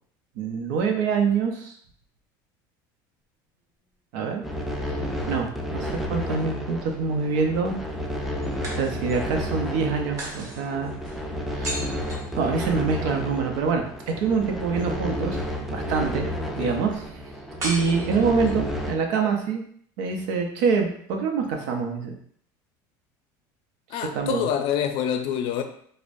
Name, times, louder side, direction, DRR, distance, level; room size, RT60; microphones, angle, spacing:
voice 1, 0.4-1.7 4.1-4.4 5.3-7.8 8.7-10.9 11.5-12.0 12.3-13.8 14.2-16.3 16.6-17.0 17.6-19.6 20.0-22.1 24.1-24.4, right 5 dB, 80° right, 0.7 m, -25 dB
sound 1, 4.4-18.9, equal, ahead, 0.4 m, -31 dB
sound 2, 8.6-9.4 10.2-13.0 17.6-18.7, right 1 dB, 35° right, 1.3 m, -37 dB
voice 2, 23.9-25.6, left 9 dB, 60° left, 0.5 m, -26 dB
4.9 x 2.1 x 2.6 m
supercardioid pair, 125°, 10 cm